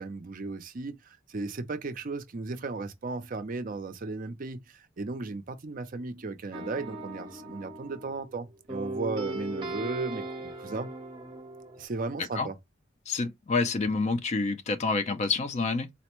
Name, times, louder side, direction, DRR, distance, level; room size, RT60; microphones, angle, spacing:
voice 1, 0.0-10.9 11.8-12.6, right 3 dB, 40° right, 0.5 m, -35 dB
sound 1, 6.5-8.4 8.7-11.8, right 2 dB, 25° right, 0.9 m, -38 dB
voice 2, 13.1-15.9, left 4 dB, 35° left, 0.4 m, -28 dB
4.0 x 2.1 x 3.0 m
head